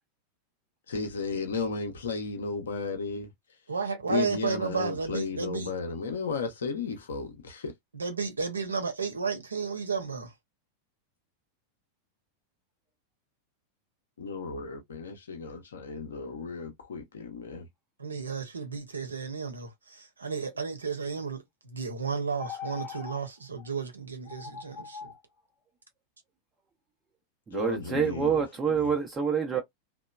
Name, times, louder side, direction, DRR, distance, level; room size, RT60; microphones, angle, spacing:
voice 1, 0.9-3.3 4.1-7.7 14.2-17.7 27.5-28.9, left 4 dB, 65° left, 0.6 m, -34 dB
voice 2, 3.7-5.7 7.9-10.3 18.0-25.1, right 5 dB, 75° right, 0.7 m, -33 dB
sound 1, 22.4-23.2 23.6-23.7 24.3-25.2, left 8 dB, 15° left, 0.8 m, -41 dB
voice 3, 27.5-29.6, right 6 dB, 20° right, 0.6 m, -27 dB
2.9 x 2.0 x 2.2 m
figure-of-eight pair, 90°, 0 cm